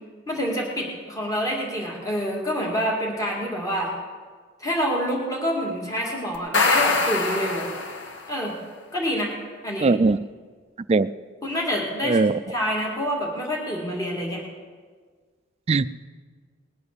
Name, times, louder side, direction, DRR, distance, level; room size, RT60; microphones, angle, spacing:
voice 1, 0.3-3.9 4.6-7.7 8.3-8.5 8.9-9.3 9.6-9.9 11.4-12.2 12.5-14.4, equal, 20° left, -2 dB, 2.3 m, -27 dB
sound 1, 6.3-8.3, left 3 dB, 85° left, 1.5 m, -23 dB
voice 2, 9.8-10.2 10.9-11.1 12.0-12.4 15.7-15.9, right 3 dB, 35° right, 14 dB, 0.3 m, -19 dB
20.0 x 8.8 x 6.7 m, 1.5 s
head